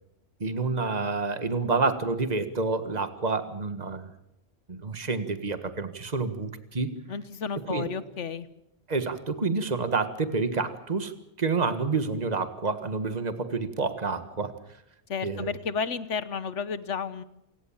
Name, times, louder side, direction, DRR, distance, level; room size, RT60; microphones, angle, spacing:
voice 1, 0.4-4.1 4.7-6.9 7.7-7.9 8.9-14.5 15.2-15.5, right 4 dB, 35° right, 10 dB, 1.7 m, -28 dB
voice 2, 7.1-8.5 15.1-17.2, left 6 dB, 75° left, 15 dB, 1.4 m, -32 dB
28.5 x 17.5 x 7.4 m, 0.84 s
omnidirectional pair, 1.3 m